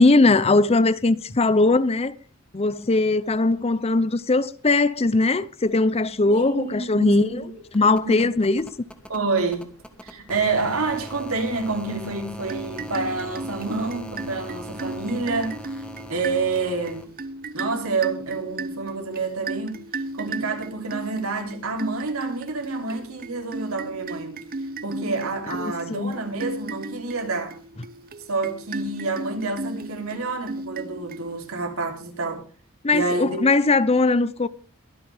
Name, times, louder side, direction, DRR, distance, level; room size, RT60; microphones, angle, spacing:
voice 1, 0.0-2.1 2.5-7.4 7.7-8.7 25.6-26.1 32.8-34.5, left 3 dB, 30° left, 0.6 m, -20 dB
sound 1, 6.1-17.0 18.5-18.6, equal, 5° left, 1.5 m, -42 dB
voice 2, 6.3-7.6 8.0-8.3 9.1-9.7 10.0-17.1 17.5-19.8 20.1-24.4 24.8-27.6 28.3-32.4 32.9-33.5, right 3 dB, 75° right, 3.4 m, -28 dB
sound 2, 12.4-31.7, right 2 dB, 40° right, 0.8 m, -35 dB
23.0 x 9.3 x 3.5 m
head